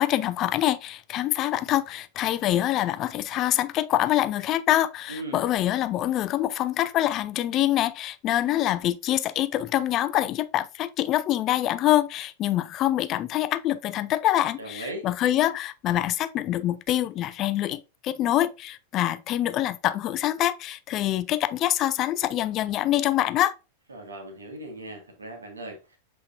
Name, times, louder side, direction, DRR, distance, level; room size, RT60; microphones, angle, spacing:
voice 1, 0.0-23.5, left 13 dB, 35° left, 0.5 m, -25 dB
voice 2, 5.1-5.4 14.6-15.1 23.9-26.0, right 1 dB, 75° right, 1.5 m, -38 dB
8.0 x 4.7 x 2.5 m
figure-of-eight pair, 90°, 0 cm